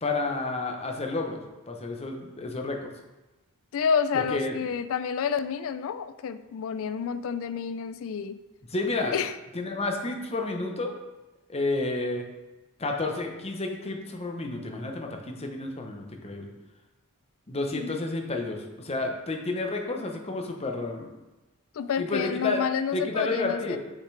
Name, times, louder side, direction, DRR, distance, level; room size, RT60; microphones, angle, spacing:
voice 1, 0.0-1.4 1.7-2.9 4.3-4.5 8.7-9.2 9.5-10.9 11.5-12.2 12.8-16.5 17.5-21.1 22.0-22.6 22.9-23.8, left 3 dB, 30° left, 3 dB, 0.8 m, -30 dB
voice 2, 3.7-8.4 9.1-9.3 17.7-18.0 21.7-23.8, left 6 dB, 65° left, 13 dB, 0.4 m, -29 dB
6.6 x 5.8 x 3.3 m, 1.1 s
head